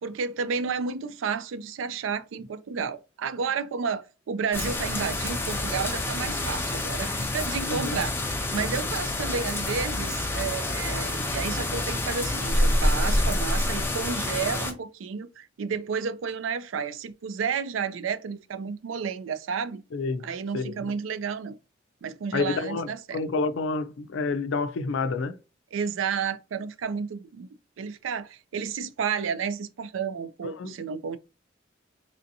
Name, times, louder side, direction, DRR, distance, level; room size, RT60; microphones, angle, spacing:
voice 1, 0.0-8.2 8.5-19.8 20.2-21.6 22.0-23.2 25.7-27.5 27.8-31.2, right 6 dB, 85° right, 0.4 m, -31 dB
sound 1, 4.5-14.7, left 1 dB, 10° left, 0.5 m, -27 dB
voice 2, 7.7-8.0 19.9-20.3 20.5-20.8 22.3-25.4 30.6-30.7, left 4 dB, 80° left, 0.4 m, -29 dB
3.4 x 2.6 x 2.6 m
head